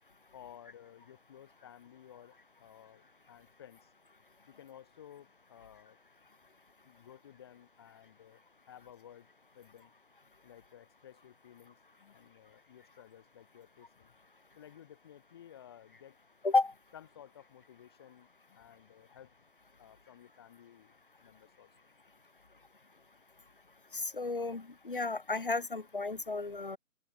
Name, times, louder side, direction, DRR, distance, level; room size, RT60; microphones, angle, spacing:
voice 1, 0.3-3.9 4.5-6.0 6.8-9.3 9.5-9.9 10.4-14.1 14.5-16.2 16.9-19.3 19.8-21.7, left 10 dB, 15° left, 6.6 m, -55 dB
voice 2, 23.9-26.8, left 3 dB, 40° left, 0.8 m, -32 dB
open air
hypercardioid pair, 180°, 42 cm